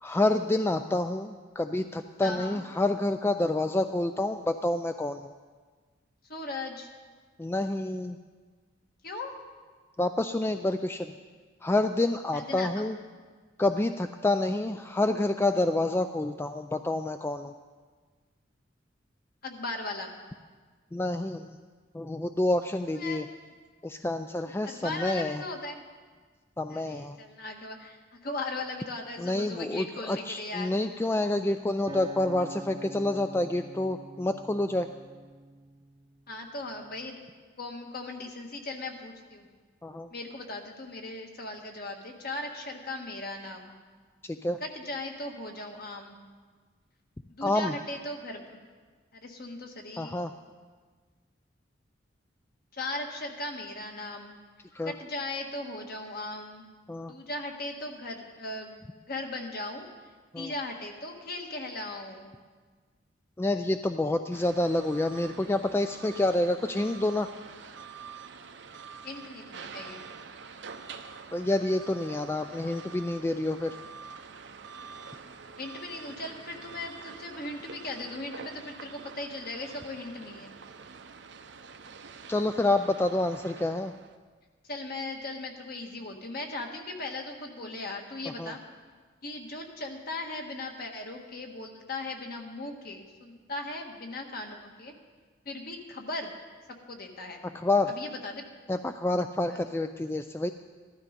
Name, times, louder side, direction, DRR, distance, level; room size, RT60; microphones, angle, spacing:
voice 1, 0.0-5.3 7.4-8.2 10.0-11.1 11.6-13.0 13.6-17.5 20.9-21.5 21.9-23.3 23.8-25.4 26.6-27.2 29.2-34.9 39.8-40.1 44.2-44.6 47.4-47.7 50.0-50.3 54.7-54.9 56.9-57.1 60.3-60.5 63.4-67.3 71.3-73.8 82.3-83.9 88.4-88.5 97.5-97.9 98.7-100.5, left 2 dB, 10° left, 8 dB, 0.3 m, -28 dB
voice 2, 2.2-2.6 6.3-6.9 9.0-9.4 12.3-12.9 19.4-20.1 22.9-23.3 24.6-25.8 26.7-30.8 36.3-37.2 37.6-39.5 40.1-43.7 44.6-46.2 47.3-48.6 49.1-50.3 52.7-54.4 54.8-56.6 57.1-58.8 59.1-59.9 60.3-62.4 69.0-70.0 75.6-80.5 84.7-88.6 89.2-94.9 95.4-96.3 96.9-97.4 97.9-98.4 99.5-99.6, left 2 dB, 50° left, 2 dB, 1.6 m, -38 dB
Acoustic guitar, 31.9-36.2 36.8-37.1, right 2 dB, 25° right, 0.7 m, -45 dB
sound 1, 64.3-84.2, right 5 dB, 65° right, 0.7 m, -46 dB
15.5 x 12.5 x 5.2 m, 1.5 s
head